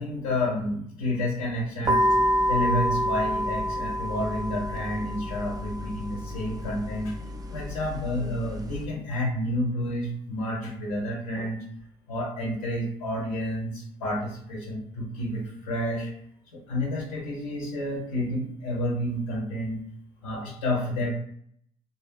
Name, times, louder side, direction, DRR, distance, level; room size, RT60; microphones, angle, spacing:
voice 1, 0.0-7.1 7.5-11.6 12.1-16.1 16.5-19.8 20.2-21.1, left 1 dB, 90° left, -3 dB, 0.6 m, -30 dB
sound 1, 1.8-8.8, equal, 20° right, 0.4 m, -28 dB
2.6 x 2.1 x 2.2 m, 0.66 s
hypercardioid pair, 60°, 18 cm